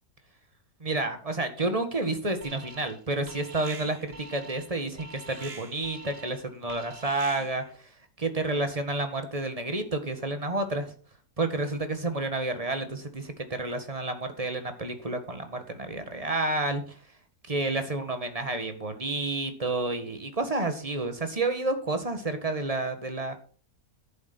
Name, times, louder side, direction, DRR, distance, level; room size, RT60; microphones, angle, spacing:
voice 1, 0.8-7.6 8.2-10.9 11.4-16.9 17.5-23.3, right 2 dB, 25° right, 7 dB, 1.7 m, -30 dB
Alarm, 2.4-3.0 3.3-7.7, right 3 dB, 45° right, 1.8 m, -45 dB
11.0 x 7.7 x 6.1 m, 0.42 s
omnidirectional pair, 1.6 m